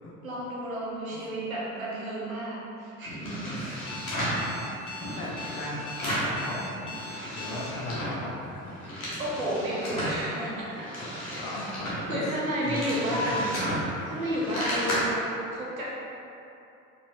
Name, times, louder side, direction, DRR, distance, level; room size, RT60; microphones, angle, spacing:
voice 1, 0.2-3.6 9.2-10.9 11.2-11.5 12.1-15.2 15.5-15.8, equal, 85° right, -6 dB, 0.7 m, -32 dB
sound 1, 3.1-4.5 4.9-6.4 6.7-8.2 8.6-10.2 10.7-14.9, equal, 85° left, 0.8 m, -34 dB
voice 2, 3.5-3.8 4.2-6.9 7.3-8.7 11.0-11.1 11.4-12.3 12.6-13.5, left 1 dB, 50° left, -3 dB, 0.8 m, -37 dB
Alarm, 3.9-7.7, left 4 dB, 15° left, 0.3 m, -41 dB
4.2 x 2.6 x 2.6 m, 2.9 s
figure-of-eight pair, 55°, 41 cm